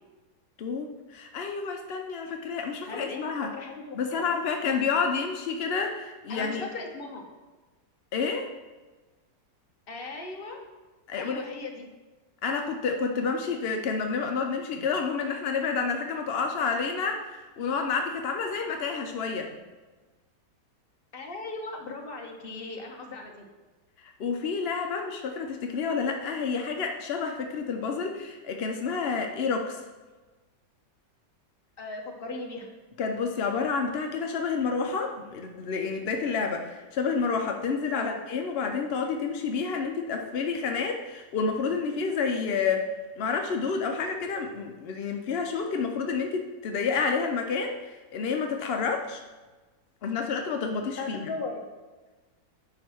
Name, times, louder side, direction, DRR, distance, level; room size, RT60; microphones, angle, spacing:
voice 1, 0.6-3.6 4.0-6.6 8.1-8.5 11.1-11.4 12.4-19.5 24.0-29.8 33.0-42.9 43.2-49.2 50.0-51.3, left 5 dB, 75° left, 4 dB, 0.5 m, -29 dB
voice 2, 2.8-4.2 6.3-7.3 9.9-10.6 11.2-11.9 14.7-14.9 21.1-23.4 31.8-32.7 37.9-38.2 51.0-51.6, left 3 dB, 40° left, 1 dB, 1.1 m, -38 dB
9.6 x 3.2 x 6.2 m, 1.2 s
omnidirectional pair, 1.9 m